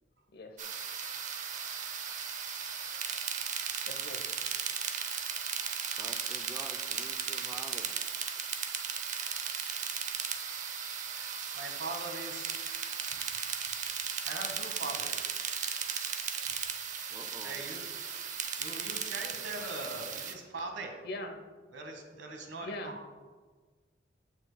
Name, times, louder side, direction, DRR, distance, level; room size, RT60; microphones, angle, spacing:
sound 1, 0.6-20.3, right 7 dB, 45° right, 0.7 m, -36 dB
voice 1, 3.8-4.2 21.0-21.4 22.6-23.1, left 1 dB, 60° left, 5 dB, 0.9 m, -41 dB
voice 2, 6.0-7.9 17.1-17.6, right 1 dB, 15° right, 7 dB, 0.4 m, -47 dB
voice 3, 11.5-12.6 14.2-15.3 17.4-17.9 18.6-21.0 21.7-23.1, right 2 dB, 85° right, 4 dB, 1.3 m, -41 dB
14.5 x 6.1 x 2.2 m, 1.4 s
head